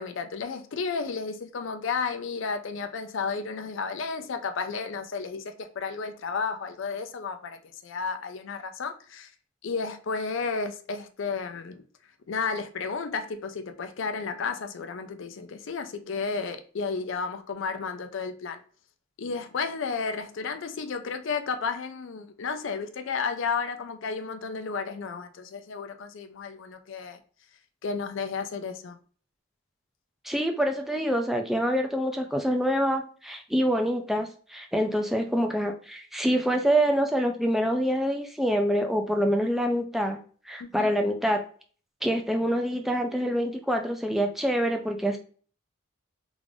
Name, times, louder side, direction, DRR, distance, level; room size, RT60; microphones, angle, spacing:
voice 1, 0.0-9.3 9.6-11.8 12.3-18.6 19.2-27.2 27.8-29.0 40.6-40.9, left 5 dB, 60° left, 0.4 m, -32 dB
voice 2, 30.2-40.2 40.5-41.4 42.0-45.2, equal, ahead, 0.4 m, -26 dB
3.6 x 2.5 x 3.3 m
head